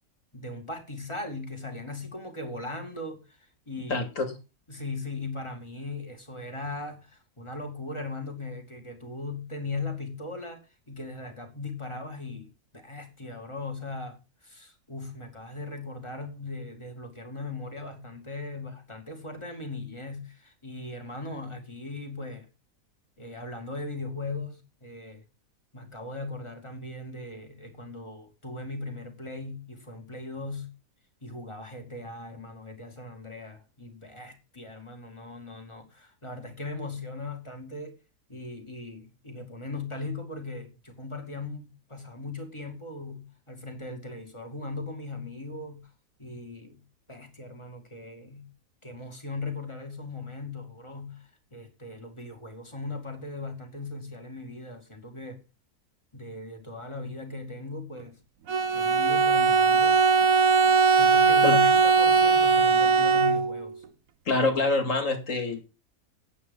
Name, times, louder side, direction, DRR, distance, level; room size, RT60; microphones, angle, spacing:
voice 1, 0.3-4.1 4.7-22.5 23.2-25.2 25.7-30.7 31.2-38.0 38.3-45.9 46.2-48.5 48.8-55.4 56.1-58.2 58.7-60.0 60.9-63.8, left 3 dB, 20° left, 2.5 m, -38 dB
voice 2, 3.9-4.4 61.4-61.6 64.3-65.6, left 3 dB, 50° left, 2.6 m, -26 dB
Bowed string instrument, 58.5-63.7, right 5 dB, 60° right, 1.3 m, -20 dB
9.2 x 8.8 x 5.5 m
omnidirectional pair, 1.7 m